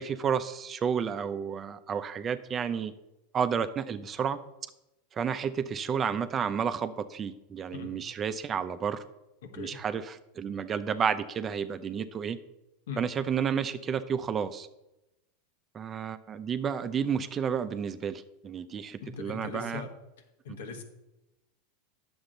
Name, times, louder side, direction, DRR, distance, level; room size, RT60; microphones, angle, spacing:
voice 1, 0.0-2.9 3.3-4.4 5.1-9.0 9.6-12.4 13.0-14.7 15.7-19.8, right 7 dB, 30° right, 12 dB, 0.6 m, -31 dB
voice 2, 9.4-9.8 12.9-13.0 19.0-19.9 20.4-20.8, left 4 dB, 80° left, 4 dB, 1.5 m, -39 dB
9.7 x 7.0 x 3.9 m, 0.94 s
hypercardioid pair, 115°, 0 cm